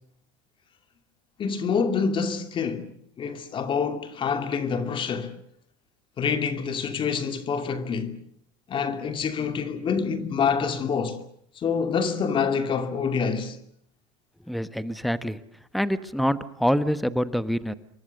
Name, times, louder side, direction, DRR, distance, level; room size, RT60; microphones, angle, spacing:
voice 1, 1.4-2.9 3.2-5.4 6.2-8.2 8.7-11.2 11.6-13.6, left 6 dB, 35° left, 2.6 m, -26 dB
voice 2, 14.5-15.4 15.7-17.7, equal, ahead, 1.3 m, -26 dB
28.0 x 23.5 x 6.7 m
supercardioid pair, 110°, 15 cm